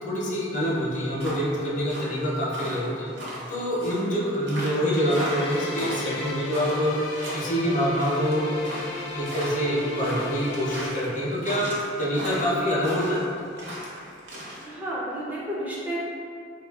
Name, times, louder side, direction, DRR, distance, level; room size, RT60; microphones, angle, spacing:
voice 1, 0.0-3.1 3.5-6.9 7.3-8.4 9.1-11.7 12.0-13.2, equal, 45° left, -6 dB, 0.6 m, -26 dB
sound 1, 0.6-14.6, equal, 70° right, 0.7 m, -37 dB
sound 2, 4.9-10.9, left 3 dB, 90° left, 0.4 m, -35 dB
voice 2, 14.6-16.0, right 1 dB, 10° right, -7 dB, 0.3 m, -31 dB
3.0 x 2.3 x 2.3 m, 2.4 s
head